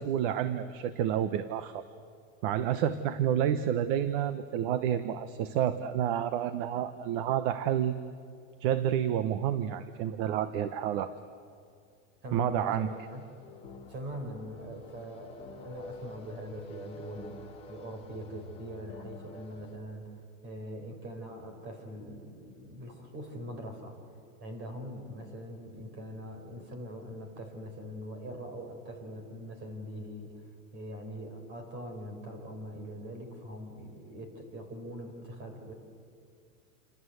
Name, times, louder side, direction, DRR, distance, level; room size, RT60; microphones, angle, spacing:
voice 1, 0.0-1.8 2.4-7.9 8.6-11.1 12.3-12.9, right 10 dB, 40° right, 12 dB, 1.0 m, -29 dB
voice 2, 12.2-13.2 13.9-24.0 24.4-30.5 30.7-35.7, equal, 25° right, 5 dB, 4.4 m, -42 dB
sound 1, 12.8-19.8, left 4 dB, 15° left, 2.2 m, -49 dB
28.5 x 26.5 x 8.0 m, 2.3 s
supercardioid pair, 170°, 40 cm